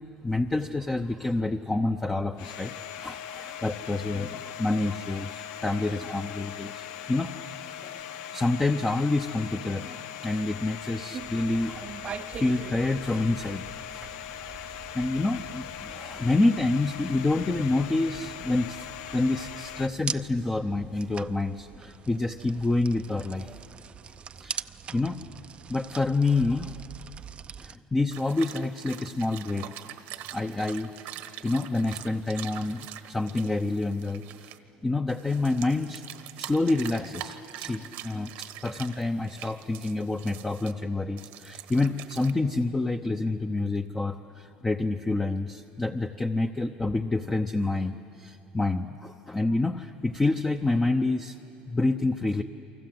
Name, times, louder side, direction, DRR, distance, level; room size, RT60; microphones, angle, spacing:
voice 1, 0.2-7.5 7.8-8.0 8.3-13.6 13.9-14.1 14.4-14.5 14.9-18.8 19.1-23.6 24.4-24.6 24.9-25.2 25.7-26.8 27.6-29.7 30.3-34.5 34.8-51.3 51.7-52.4, left 2 dB, 15° left, 5 dB, 0.8 m, -28 dB
Domestic sounds home sounds, 2.4-19.9, left 10 dB, 90° left, 0.9 m, -40 dB
sound 1, 11.1-27.8, right 7 dB, 35° right, 0.6 m, -43 dB
sound 2, 28.1-34.6 35.1-40.7 41.2-42.3, right 13 dB, 75° right, 1.3 m, -43 dB
29.0 x 24.5 x 7.8 m, 2.7 s
cardioid pair, 115°, 3 cm